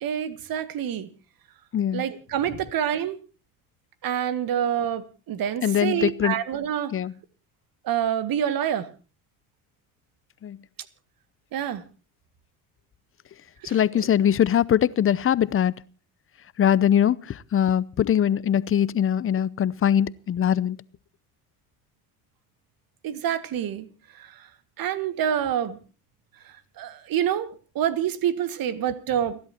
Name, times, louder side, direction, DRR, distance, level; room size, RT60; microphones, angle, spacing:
voice 1, 0.0-1.1 1.9-3.2 4.0-7.0 7.8-8.9 11.5-11.8 13.6-14.1 23.0-23.9 24.1-24.5 24.8-25.8 26.5-29.4, right 9 dB, 50° right, 1.8 m, -27 dB
voice 2, 1.7-2.0 5.6-6.3 6.9-7.1 10.4-10.6 13.6-15.7 16.6-20.8, left 9 dB, 30° left, 0.7 m, -22 dB
30.0 x 11.5 x 2.9 m
hypercardioid pair, 65°, 45 cm